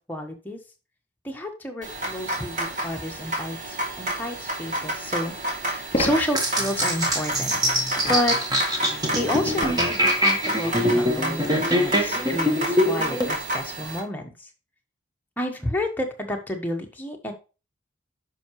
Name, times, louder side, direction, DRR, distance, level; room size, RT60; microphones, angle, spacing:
voice 1, 0.1-0.6 1.2-5.3 5.6-7.5 8.1-8.4 8.6-8.8 9.1-14.5 15.4-17.3, left 1 dB, 10° left, 2 dB, 1.4 m, -30 dB
sound 1, 1.8-14.0, right 1 dB, 40° right, 2.8 m, -30 dB
sound 2, 4.4-4.5 5.9-6.2 8.0-8.5 9.6-9.9 10.3-10.6 11.4-11.5, left 1 dB, 35° left, 2.8 m, -29 dB
sound 3, 6.3-13.3, equal, 20° right, 1.6 m, -24 dB
10.5 x 6.0 x 3.2 m, 0.31 s
head